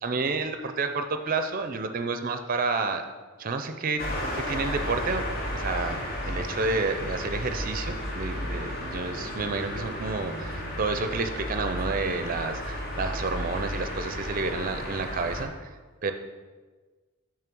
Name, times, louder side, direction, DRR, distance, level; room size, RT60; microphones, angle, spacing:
voice 1, 0.0-3.0 3.4-4.0 4.3-5.2 5.5-15.7 16.0-16.1, right 3 dB, 40° right, 8 dB, 0.5 m, -30 dB
sound 1, 4.0-15.4, left 1 dB, 45° left, 1.0 m, -33 dB
7.1 x 3.1 x 6.1 m, 1.3 s
head